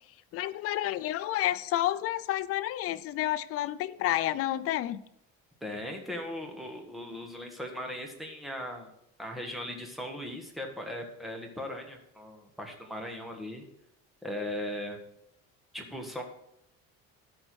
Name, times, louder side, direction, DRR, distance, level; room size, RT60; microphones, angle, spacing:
voice 1, 0.3-5.0, left 14 dB, 50° left, 0.5 m, -30 dB
voice 2, 5.6-8.9 9.2-13.6 14.2-15.0 15.7-16.2, left 1 dB, ahead, 1.3 m, -38 dB
13.0 x 4.4 x 6.2 m
cardioid pair, 165°, 30 cm